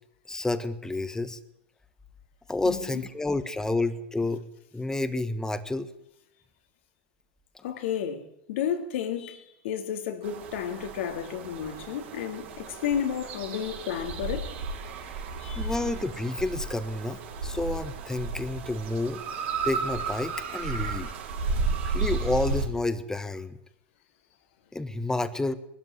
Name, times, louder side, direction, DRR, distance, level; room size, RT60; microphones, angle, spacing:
voice 1, 0.3-1.4 2.5-4.4 4.7-5.9 15.6-19.2 19.6-21.1 21.8-23.6 24.7-25.5, left 2 dB, 10° left, 1.5 m, -30 dB
voice 2, 2.6-3.0 7.6-14.5 15.4-15.8, left 8 dB, 75° left, 2.9 m, -32 dB
sound 1, 10.2-22.7, right 4 dB, 75° right, 4.5 m, -33 dB
20.0 x 13.0 x 10.0 m
hypercardioid pair, 105°, 6 cm